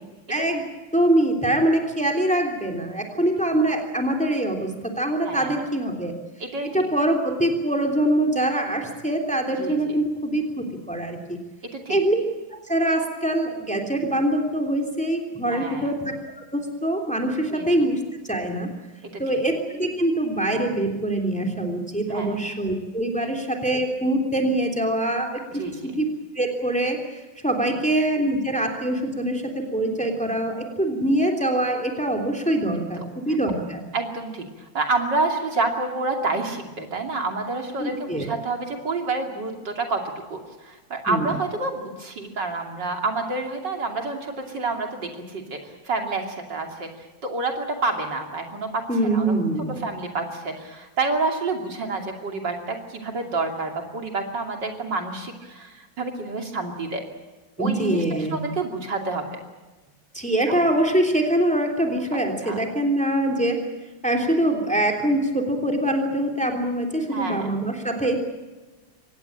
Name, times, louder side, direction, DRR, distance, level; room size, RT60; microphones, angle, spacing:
voice 1, 0.3-0.6 0.9-6.1 6.7-11.4 11.9-12.2 12.5-16.1 16.5-18.0 18.3-18.7 19.2-25.6 26.0-26.1 26.3-33.8 37.8-38.2 41.1-41.3 48.9-49.9 57.6-58.4 60.1-63.6 64.0-68.2, right 1 dB, 5° left, 3 dB, 3.1 m, -24 dB
voice 2, 5.3-5.6 6.4-6.9 9.6-10.0 11.7-12.0 15.5-16.0 17.5-17.9 19.0-19.2 22.1-22.4 25.6-26.0 33.0-33.1 33.9-40.0 40.3-46.9 47.2-48.8 49.1-49.3 49.8-57.0 57.6-59.3 60.5-60.6 62.4-62.6 67.1-67.5, right 3 dB, 60° right, 3 dB, 3.4 m, -28 dB
24.5 x 18.5 x 8.8 m, 1.2 s
omnidirectional pair, 2.1 m